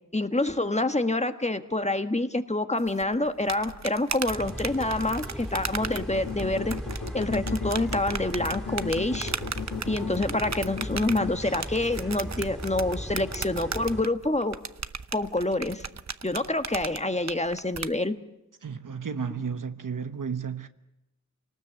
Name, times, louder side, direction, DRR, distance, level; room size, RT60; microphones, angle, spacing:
voice 1, 0.1-6.7 7.1-9.3 9.9-14.6 15.1-15.8 16.2-18.1, left 2 dB, 20° left, 1.5 m, -27 dB
sound 1, 2.9-17.9, right 5 dB, 60° right, 0.8 m, -36 dB
sound 2, 4.3-14.0, equal, ahead, 3.2 m, -37 dB
sound 3, 5.8-11.3, left 6 dB, 75° left, 1.7 m, -35 dB
voice 2, 18.6-20.7, right 6 dB, 85° right, 1.2 m, -33 dB
28.0 x 19.0 x 8.0 m
wide cardioid pair, 50°, 31 cm